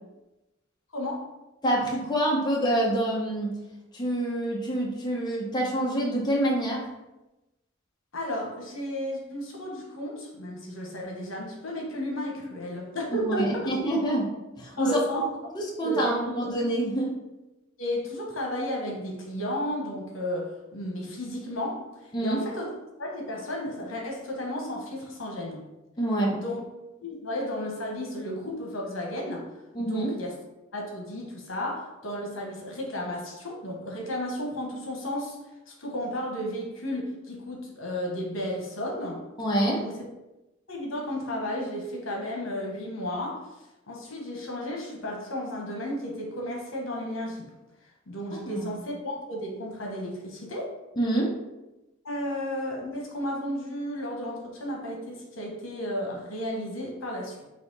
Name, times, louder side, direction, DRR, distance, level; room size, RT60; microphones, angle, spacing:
voice 1, 0.9-1.2 8.1-13.7 14.8-15.3 15.8-16.4 17.8-21.8 22.2-22.7 23.0-25.6 26.3-26.6 27.0-29.5 29.8-30.3 30.7-35.4 35.8-39.2 39.7-40.0 40.7-43.5 43.9-47.5 48.1-50.7 52.0-57.4, left 1 dB, 80° left, -1 dB, 1.0 m, -33 dB
voice 2, 1.6-3.6 3.9-6.9 13.1-14.3 14.6-15.2 15.5-17.2 22.1-22.4 26.0-26.4 29.7-30.1 39.4-39.8 48.5-48.7 51.0-51.3, right 1 dB, 20° left, -3 dB, 0.7 m, -26 dB
4.1 x 2.9 x 4.0 m, 0.99 s
head